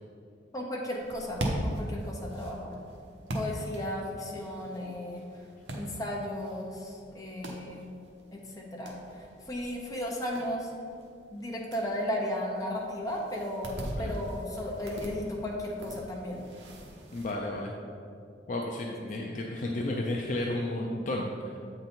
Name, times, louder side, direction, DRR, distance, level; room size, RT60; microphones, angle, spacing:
voice 1, 0.5-2.7 3.3-5.2 5.7-7.9 8.3-9.0 9.5-10.7 11.3-16.5, left 1 dB, 20° left, -2 dB, 0.9 m, -35 dB
sound 1, 0.9-17.4, equal, 70° right, 1.0 m, -41 dB
voice 2, 17.1-17.7 18.5-21.6, left 1 dB, 45° left, 0 dB, 0.4 m, -32 dB
7.9 x 3.9 x 4.4 m, 2.5 s
head